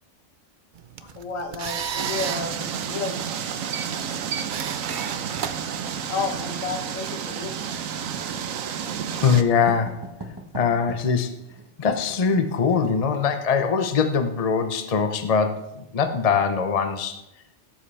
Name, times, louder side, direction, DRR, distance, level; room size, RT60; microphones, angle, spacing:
sound 1, 0.8-6.4, right 8 dB, 55° right, 0.6 m, -34 dB
voice 1, 1.0-3.3 6.1-7.6, left 4 dB, 75° left, 5 dB, 1.5 m, -31 dB
sound 2, 2.0-9.4, right 8 dB, 90° right, 1.1 m, -31 dB
Writing, 7.5-13.4, right 1 dB, 20° right, 1.1 m, -42 dB
voice 2, 9.1-10.1 10.5-11.3 11.8-17.2, left 6 dB, 35° left, 8 dB, 0.7 m, -22 dB
17.0 x 7.6 x 3.4 m, 0.89 s
omnidirectional pair, 1.4 m